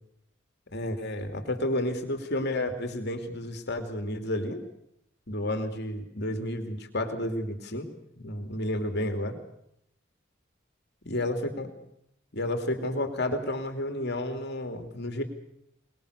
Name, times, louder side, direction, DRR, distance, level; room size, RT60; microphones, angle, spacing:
voice 1, 0.7-4.6 5.3-7.9 8.1-9.4 11.1-11.7 12.3-15.2, left 1 dB, 55° left, 6 dB, 2.8 m, -31 dB
24.5 x 21.0 x 6.8 m, 0.76 s
head